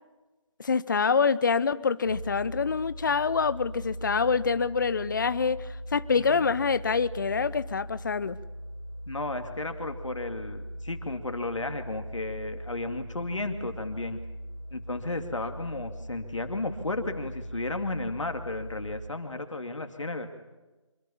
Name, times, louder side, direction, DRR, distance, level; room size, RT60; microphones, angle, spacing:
voice 1, 0.6-8.4, left 5 dB, 40° left, 17 dB, 0.8 m, -26 dB
sound 1, 2.0-19.0, equal, 65° right, 5.3 m, -40 dB
voice 2, 6.2-6.5 9.1-14.2 14.7-20.3, left 2 dB, 70° left, 6 dB, 2.5 m, -33 dB
25.5 x 23.5 x 7.2 m, 1.2 s
figure-of-eight pair, 155°, 16 cm